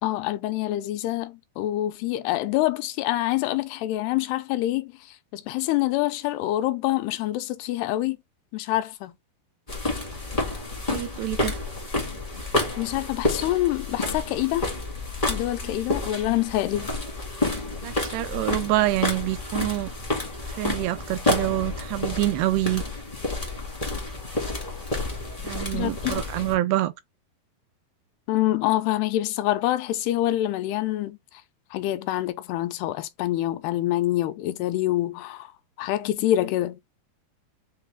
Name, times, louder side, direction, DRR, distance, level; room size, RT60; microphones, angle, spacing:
voice 1, 0.0-8.2 8.5-9.1 12.8-14.7 15.3-16.9 25.7-26.2 28.3-31.2 31.7-35.5 35.8-36.8, left 15 dB, 85° left, 2.6 m, -26 dB
sound 1, 9.7-26.5, left 2 dB, 30° left, 0.6 m, -29 dB
voice 2, 10.9-11.6 17.8-19.9 20.5-22.8 25.4-26.9, right 16 dB, 85° right, 2.6 m, -26 dB
6.7 x 2.4 x 3.3 m
omnidirectional pair, 4.6 m